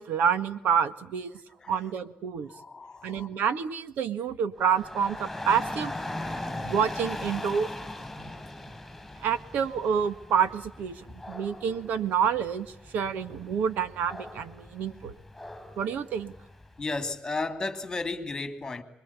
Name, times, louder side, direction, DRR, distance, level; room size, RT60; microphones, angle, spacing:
voice 1, 0.0-1.4 1.7-2.5 3.0-5.9 6.6-7.7 9.2-15.2 15.8-16.3, right 7 dB, 80° right, 1.8 m, -28 dB
voice 2, 2.5-3.3 16.8-18.8, left 3 dB, 20° left, 2.5 m, -33 dB
Dog / Rain, 4.6-16.8, left 1 dB, 5° left, 5.7 m, -40 dB
26.0 x 22.5 x 8.4 m
cardioid pair, 150°, 3 cm